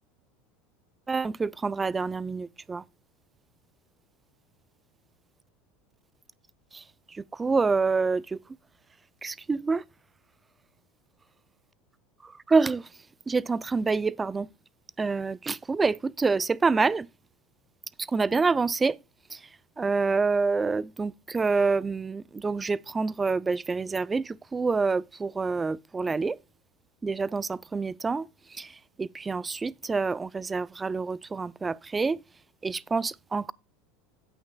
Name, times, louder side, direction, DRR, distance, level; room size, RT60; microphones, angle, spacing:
voice 1, 1.1-2.8 6.7-8.4 9.2-9.8 12.2-12.9 13.3-14.5 15.0-17.1 18.0-19.0 19.3-19.4 19.8-26.4 27.0-32.2 32.6-33.5, right 4 dB, 20° right, 0.4 m, -27 dB
17.0 x 6.2 x 2.2 m
hypercardioid pair, 85°, 0 cm